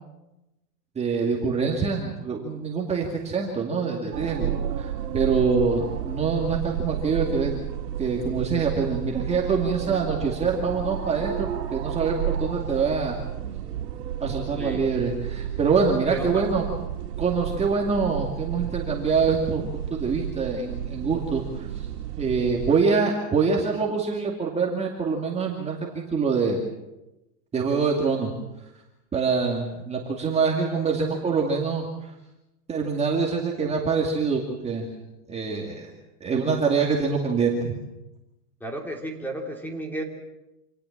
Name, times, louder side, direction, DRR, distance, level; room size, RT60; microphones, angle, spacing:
voice 1, 1.0-7.6 8.0-13.2 14.2-16.6 17.2-21.9 22.2-26.6 27.5-28.3 29.1-31.8 32.7-34.9 35.3-35.9 36.2-37.7, right 5 dB, 15° right, -1 dB, 2.4 m, -25 dB
sound 1, 4.1-22.7, right 10 dB, 85° right, 2.3 m, -32 dB
voice 2, 16.1-16.4 38.6-40.0, right 1 dB, 5° left, 2 dB, 3.0 m, -32 dB
27.0 x 18.5 x 7.4 m, 0.97 s
supercardioid pair, 155°, 47 cm